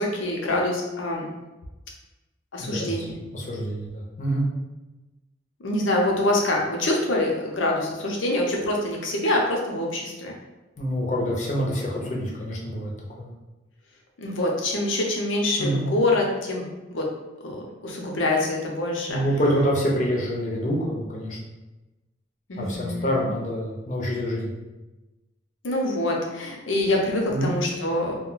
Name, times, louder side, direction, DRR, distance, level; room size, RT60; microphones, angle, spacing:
voice 1, 0.0-1.3 2.5-3.1 5.6-10.3 14.2-16.7 16.9-17.1 17.4-19.2 22.5-23.3 25.6-28.2, left 1 dB, 80° left, -1 dB, 0.6 m, -25 dB
voice 2, 2.6-2.9 3.3-4.4 10.8-13.3 15.6-15.8 19.1-21.4 22.6-24.5 27.3-27.5, equal, 40° left, -3 dB, 0.6 m, -26 dB
2.3 x 2.2 x 3.7 m, 1.1 s
head